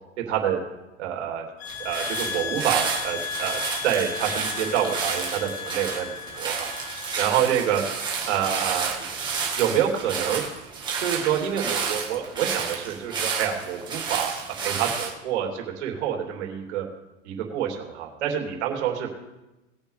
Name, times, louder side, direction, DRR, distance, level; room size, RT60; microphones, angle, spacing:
voice 1, 0.3-0.6 1.0-1.4 1.8-6.7 7.2-7.8 8.3-9.1 9.5-10.4 11.0-16.9 17.2-19.3, right 9 dB, 65° right, 0 dB, 3.3 m, -27 dB
sound 1, 1.6-7.4, left 8 dB, 55° left, 0.8 m, -35 dB
sound 2, 1.7-15.1, right 5 dB, 10° right, 1.7 m, -31 dB
20.5 x 8.3 x 3.4 m, 1.0 s
supercardioid pair, 165°, 37 cm